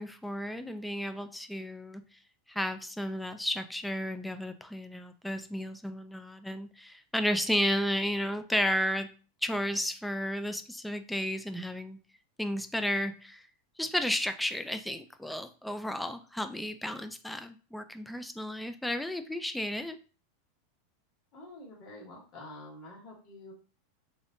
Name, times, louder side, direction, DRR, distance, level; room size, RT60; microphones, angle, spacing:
voice 1, 0.0-2.0 2.5-9.1 9.4-12.0 12.4-13.5 13.8-20.0, equal, 5° left, 9 dB, 0.3 m, -33 dB
voice 2, 21.3-23.5, left 2 dB, 40° left, -3 dB, 1.7 m, -47 dB
3.6 x 3.5 x 2.6 m, 0.36 s
supercardioid pair, 160°, 0 cm